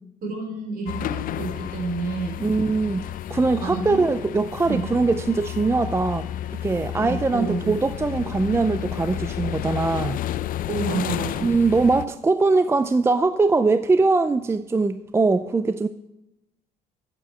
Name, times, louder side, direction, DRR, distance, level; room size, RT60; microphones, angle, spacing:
voice 1, 0.2-2.4 3.6-4.0 4.7-4.8 7.0-7.7 10.7-11.4, right 4 dB, 60° right, 1 dB, 4.1 m, -29 dB
sound 1, 0.9-12.1, left 12 dB, 55° left, 0.4 m, -31 dB
voice 2, 2.4-6.3 6.6-10.2 11.4-15.9, right 3 dB, 15° right, 11 dB, 0.4 m, -21 dB
8.9 x 7.0 x 6.6 m, 0.88 s
cardioid pair, 110°, 17 cm